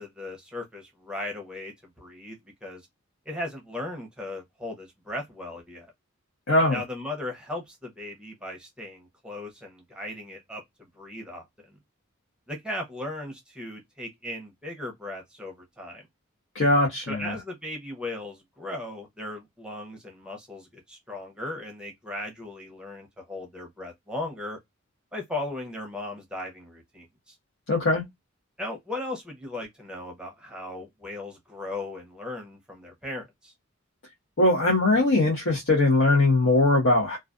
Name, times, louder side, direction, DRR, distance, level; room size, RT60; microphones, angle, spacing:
voice 1, 0.0-2.8 3.3-5.9 6.7-11.8 12.5-16.0 17.1-24.6 25.1-27.4 28.6-33.5, left 1 dB, 5° right, 0.7 m, -37 dB
voice 2, 6.5-6.8 16.5-17.4 27.7-28.0 34.4-37.2, left 2 dB, 60° left, 0.9 m, -21 dB
2.3 x 2.3 x 2.3 m
head